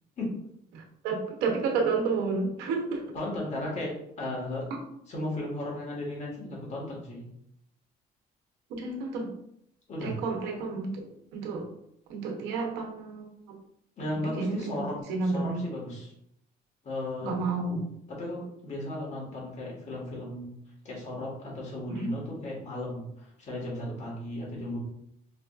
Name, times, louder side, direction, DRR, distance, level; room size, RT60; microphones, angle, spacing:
voice 1, 0.7-3.1 8.7-9.3 10.0-11.0 11.3-11.7 12.1-13.6 14.2-14.7 15.1-15.6 17.2-17.9 21.9-22.2, right 4 dB, 90° right, 0 dB, 0.7 m, -31 dB
voice 2, 3.1-4.7 5.1-7.2 9.9-10.1 14.0-15.0 15.2-16.1 16.8-17.3 18.1-20.5 20.8-24.8, left 1 dB, 45° left, -3 dB, 1.5 m, -35 dB
4.8 x 2.4 x 2.4 m, 0.75 s
cardioid pair, 110°, 17 cm